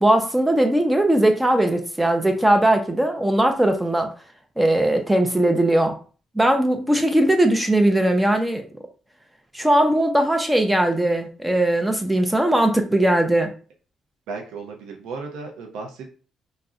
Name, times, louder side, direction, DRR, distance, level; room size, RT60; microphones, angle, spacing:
voice 1, 0.0-4.1 4.6-6.0 6.4-8.6 9.5-13.5, right 1 dB, 10° right, 5 dB, 0.4 m, -19 dB
voice 2, 14.3-16.1, right 4 dB, 85° right, 1 dB, 0.5 m, -34 dB
2.4 x 2.0 x 3.5 m, 0.38 s
cardioid pair, 75°, 0 cm